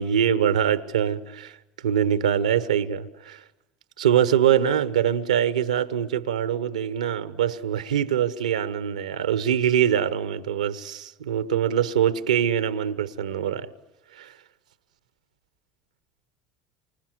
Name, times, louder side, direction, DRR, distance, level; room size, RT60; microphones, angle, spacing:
voice 1, 0.0-1.6 1.8-3.4 4.0-13.7 14.2-14.3, right 9 dB, 80° right, 1.1 m, -23 dB
28.5 x 25.5 x 8.0 m
figure-of-eight pair, 60°, 4 cm